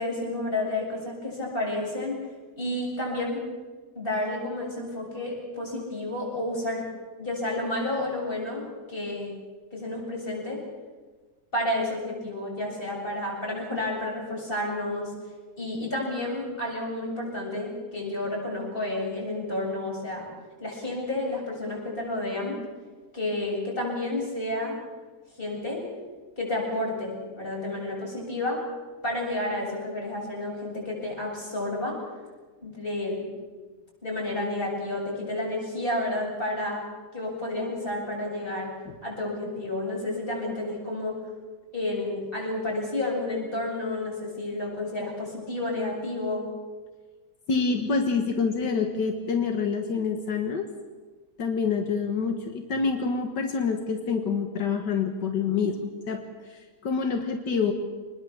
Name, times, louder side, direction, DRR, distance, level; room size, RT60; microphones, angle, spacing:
voice 1, 0.0-2.2 2.6-3.4 3.9-6.8 7.2-9.3 9.7-10.6 11.5-15.1 15.6-20.3 20.6-22.6 23.1-24.8 25.4-25.8 26.4-28.6 29.0-32.0 32.6-33.3 34.0-36.8 37.1-38.7 39.0-41.2 41.7-46.4, left 1 dB, 30° left, -2 dB, 8.2 m, -30 dB
voice 2, 47.5-50.7 51.4-56.2 56.5-57.7, left 5 dB, 80° left, 5 dB, 2.1 m, -27 dB
26.5 x 20.5 x 7.3 m, 1.4 s
omnidirectional pair, 1.8 m